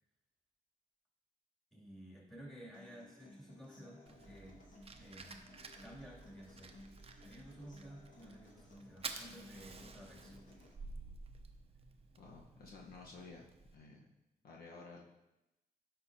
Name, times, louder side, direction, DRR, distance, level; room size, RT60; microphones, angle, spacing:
voice 1, 1.7-4.6 5.0-5.4 5.8-6.8 7.2-10.5, equal, ahead, -4 dB, 2.7 m, -54 dB
Human voice / Acoustic guitar, 2.7-10.7, left 2 dB, 55° left, 1.7 m, -59 dB
Fire, 4.1-13.7, right 4 dB, 40° right, 0.7 m, -52 dB
voice 2, 12.2-13.5 13.7-14.1 14.4-15.0, left 4 dB, 75° left, -1 dB, 1.1 m, -53 dB
9.6 x 5.8 x 2.8 m, 0.95 s
cardioid pair, 70°, 16 cm